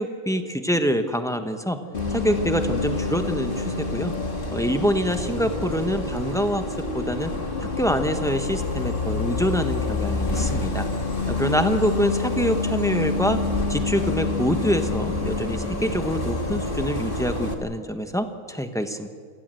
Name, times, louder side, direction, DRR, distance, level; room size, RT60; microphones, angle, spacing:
voice 1, 0.0-1.8 2.1-4.1 4.5-6.6 6.9-7.3 7.8-10.9 11.3-13.4 13.7-19.1, equal, 5° left, 7 dB, 0.6 m, -25 dB
Bus, 1.9-17.5, left 3 dB, 25° left, 2.1 m, -27 dB
28.5 x 17.5 x 7.9 m, 2.1 s
omnidirectional pair, 2.4 m